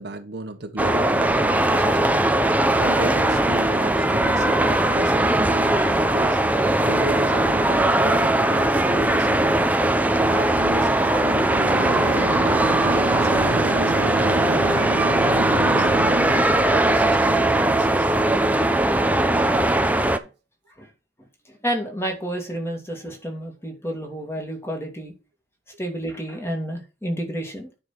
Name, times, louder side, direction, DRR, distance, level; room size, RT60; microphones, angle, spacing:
voice 1, 0.0-2.3 2.7-6.4 6.8-9.7 10.2-11.5 11.9-12.4 12.8-14.7 15.2-18.2, right 2 dB, 60° right, 1.3 m, -34 dB
sound 1, 0.8-20.2, right 1 dB, 10° right, 0.6 m, -20 dB
sound 2, 6.6-6.8 11.5-16.1, right 4 dB, 80° right, 0.6 m, -29 dB
voice 2, 19.5-20.0 20.2-20.3 20.8-20.9 21.5-25.1 25.8-27.7, right 1 dB, 15° left, 2.3 m, -30 dB
9.7 x 4.3 x 5.9 m
head